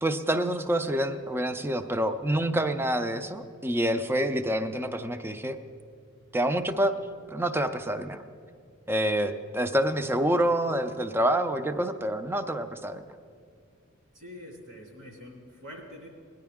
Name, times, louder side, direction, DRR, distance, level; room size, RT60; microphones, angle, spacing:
voice 1, 0.0-5.6 6.3-7.0 7.3-8.2 8.9-13.0, right 1 dB, 10° right, 9 dB, 0.4 m, -27 dB
voice 2, 14.1-16.1, left 1 dB, 70° right, -3 dB, 3.1 m, -45 dB
19.5 x 10.5 x 3.5 m, 2.2 s
head